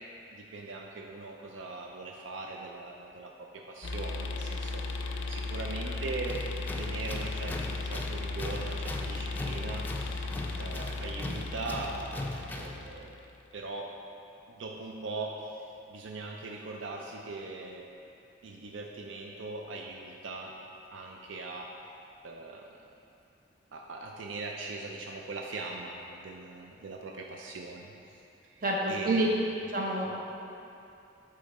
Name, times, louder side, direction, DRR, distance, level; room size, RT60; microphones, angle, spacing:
voice 1, 0.3-6.4 6.8-10.3 10.6-12.3 12.6-13.1 13.5-13.9 14.5-15.6 15.9-17.8 18.4-20.6 20.9-21.7 22.2-22.6 23.7-28.6 28.9-29.4, right 3 dB, 85° right, 0 dB, 0.5 m, -40 dB
sound 1, 3.8-13.3, left 3 dB, 80° left, 0.4 m, -36 dB
Tools, 6.3-12.9, left 1 dB, 10° left, 0.4 m, -40 dB
voice 2, 28.6-29.3 29.7-30.2, right 2 dB, 50° right, -2 dB, 0.9 m, -28 dB
8.5 x 3.8 x 4.1 m, 2.7 s
head